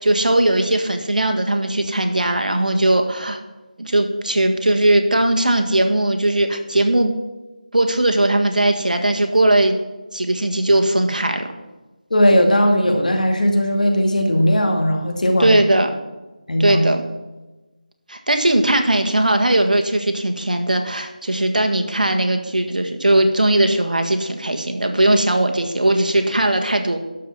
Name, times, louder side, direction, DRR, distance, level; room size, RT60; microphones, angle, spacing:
voice 1, 0.0-3.4 3.8-7.1 7.7-9.8 10.1-11.5 15.4-15.9 16.6-17.0 18.1-27.0, right 1 dB, 70° right, 5 dB, 1.7 m, -18 dB
voice 2, 12.1-15.6 16.5-16.9, equal, 65° left, 3 dB, 2.3 m, -17 dB
12.0 x 5.4 x 7.3 m, 1.1 s
figure-of-eight pair, 170°, 5 cm